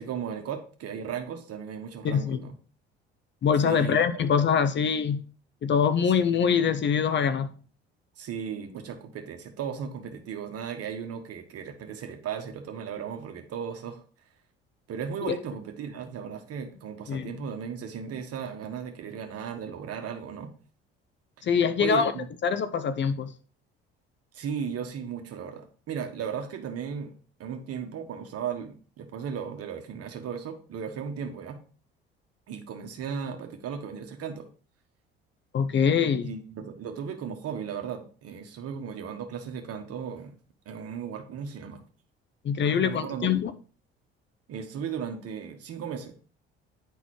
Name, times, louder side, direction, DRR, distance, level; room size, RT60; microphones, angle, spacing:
voice 1, 0.0-2.6 3.6-4.0 8.2-14.0 14.9-20.5 21.8-22.3 24.3-27.1 27.4-31.6 32.5-34.5 36.2-40.4 40.6-41.8 42.6-43.3 44.5-46.1, right 7 dB, 50° right, 1.3 m, -36 dB
voice 2, 2.0-2.4 3.4-5.2 5.6-7.5 15.3-15.4 17.1-17.3 21.4-22.1 22.4-23.3 35.5-36.3 42.4-43.5, left 7 dB, 35° left, 0.6 m, -24 dB
10.5 x 4.0 x 3.0 m
hypercardioid pair, 60°, 31 cm